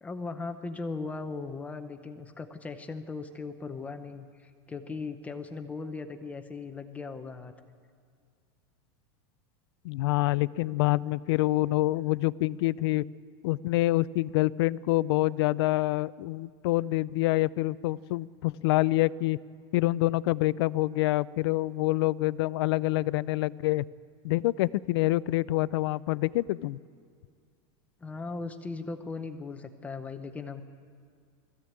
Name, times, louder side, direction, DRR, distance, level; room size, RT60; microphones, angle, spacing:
voice 1, 0.0-7.5 28.0-30.6, left 4 dB, 10° left, 8 dB, 0.8 m, -38 dB
voice 2, 9.8-13.0 13.4-19.4 19.7-23.9 24.2-26.8, left 18 dB, 65° left, 20 dB, 0.5 m, -26 dB
20.0 x 15.0 x 8.8 m, 2.1 s
supercardioid pair, 170°, 14 cm